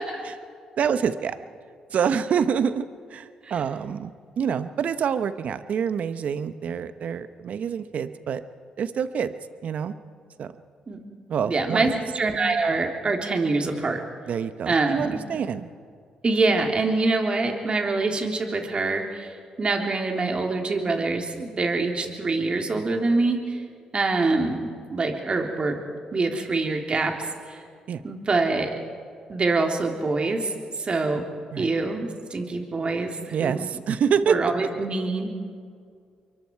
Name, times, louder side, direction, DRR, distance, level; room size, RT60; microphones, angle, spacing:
voice 1, 0.8-1.4 1.9-4.1 4.4-8.4 8.8-9.3 9.6-9.9 10.4-10.5 11.3-12.0 14.3-15.7 27.9-28.0 31.5-31.7 33.3-34.5, right 7 dB, 65° right, 12 dB, 1.0 m, -26 dB
voice 2, 11.4-14.0 14.7-15.2 16.2-23.6 23.9-25.8 26.1-27.2 27.4-27.6 28.0-28.7 29.3-31.3 31.6-33.7 34.2-35.3, right 3 dB, 40° right, 3 dB, 3.5 m, -25 dB
27.0 x 23.0 x 4.7 m, 2.2 s
supercardioid pair, 50°, 3 cm